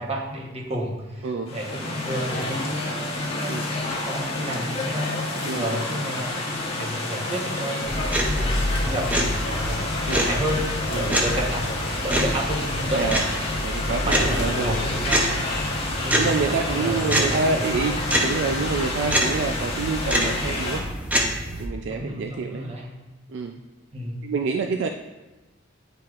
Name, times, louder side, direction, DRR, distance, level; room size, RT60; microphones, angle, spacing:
voice 1, 0.0-10.7 10.9-11.7 12.0-13.7 14.0-15.4 16.0-17.8 21.9-22.9 23.9-24.3, right 1 dB, 30° right, -1 dB, 1.0 m, -31 dB
voice 2, 1.2-1.5 3.5-3.7 5.4-5.8 10.1-10.3 10.9-11.4 12.9-13.2 13.6-14.7 16.2-20.8 21.6-22.7 23.3-23.6 24.2-24.9, right 4 dB, 60° right, 5 dB, 0.3 m, -27 dB
sound 1, 1.5-20.8, left 2 dB, 30° left, 1.0 m, -29 dB
sound 2, 7.9-21.7, equal, 10° right, 0.6 m, -27 dB
9.3 x 4.6 x 2.4 m, 1.1 s
head